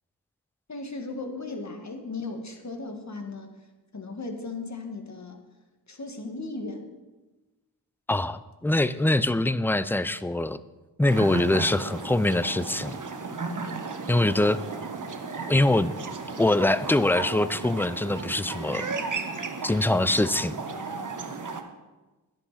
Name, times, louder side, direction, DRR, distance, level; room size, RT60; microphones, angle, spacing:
voice 1, 0.7-3.5 3.9-5.4 5.9-6.9, left 3 dB, 45° left, 4 dB, 2.0 m, -36 dB
voice 2, 8.1-10.6 11.0-13.0 14.1-14.6 15.5-15.9 16.4-18.9 19.6-20.6, left 1 dB, 5° left, 15 dB, 0.5 m, -23 dB
sound 1, 11.1-21.6, right 4 dB, 50° right, 1.3 m, -34 dB
11.5 x 10.5 x 4.3 m, 1.2 s
cardioid pair, 50°, 40 cm